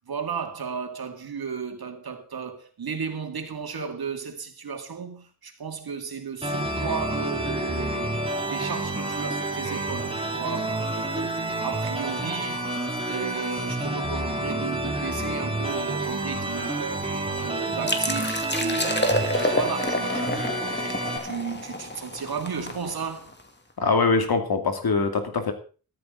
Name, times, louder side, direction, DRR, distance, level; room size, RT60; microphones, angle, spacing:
voice 1, 0.1-12.7 13.1-23.3, right 6 dB, 90° right, 2.6 m, -34 dB
sound 1, 6.4-21.2, right 2 dB, 15° right, 3.8 m, -29 dB
sound 2, 17.9-23.4, left 2 dB, 30° left, 2.7 m, -29 dB
voice 2, 23.8-25.5, left 4 dB, 90° left, 2.7 m, -23 dB
14.0 x 13.5 x 3.9 m
wide cardioid pair, 70°, 36 cm